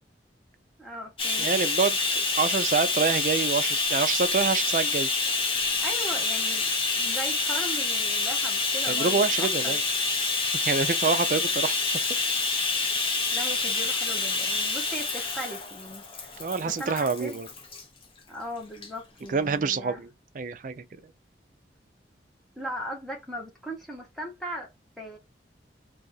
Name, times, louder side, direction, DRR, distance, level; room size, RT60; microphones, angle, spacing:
voice 1, 0.8-1.5 5.8-9.8 13.3-16.3 16.6-17.4 18.3-20.0 22.6-24.7 25.0-25.2, equal, ahead, 1.0 m, -38 dB
Bathtub (filling or washing), 1.2-17.8 18.7-18.9 19.3-19.4, left 3 dB, 30° left, 0.7 m, -27 dB
voice 2, 1.4-5.1 8.8-9.8 10.6-11.8 12.1-12.2 16.4-17.5 19.3-20.1 20.3-20.8, right 5 dB, 45° right, 0.4 m, -26 dB
2.7 x 2.4 x 3.9 m
head